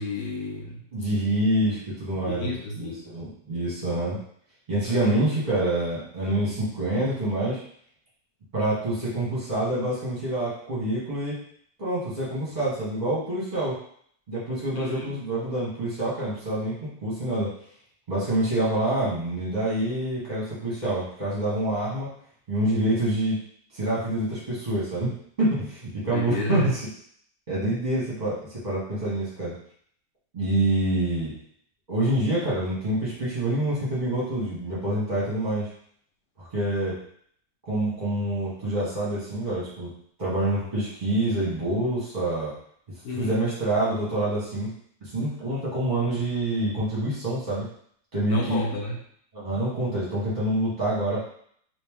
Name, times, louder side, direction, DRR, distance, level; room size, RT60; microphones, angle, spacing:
voice 1, 0.0-0.8 2.3-3.1 4.8-5.3 14.7-15.1 26.1-26.7 43.0-43.4 48.3-49.0, left 1 dB, 70° left, -1 dB, 1.1 m, -31 dB
voice 2, 0.9-4.2 4.7-7.6 8.5-11.4 11.8-13.8 14.3-16.7 17.0-17.5 18.1-22.1 22.5-23.4 23.7-25.1 25.4-26.8 27.5-29.5 30.3-31.3 31.9-35.7 36.4-37.0 37.7-39.9 40.2-42.5 43.2-44.7 45.0-47.6 48.1-48.6 49.3-51.2, right 1 dB, 30° right, -8 dB, 1.1 m, -26 dB
3.0 x 3.0 x 3.5 m, 0.63 s
omnidirectional pair, 1.9 m